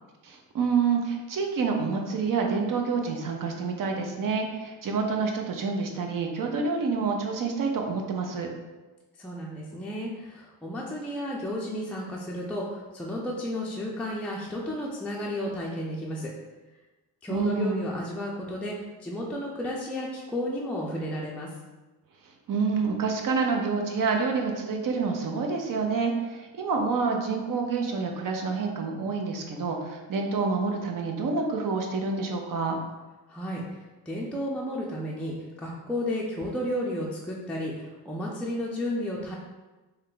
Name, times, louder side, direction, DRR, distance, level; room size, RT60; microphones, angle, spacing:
voice 1, 0.2-8.5 17.3-17.9 22.5-32.8, right 4 dB, 55° right, 2 dB, 0.6 m, -28 dB
voice 2, 9.2-16.3 17.2-21.5 33.3-39.3, left 1 dB, 5° left, -4 dB, 0.4 m, -33 dB
3.3 x 2.2 x 3.8 m, 1.2 s
cardioid pair, 90°, 40 cm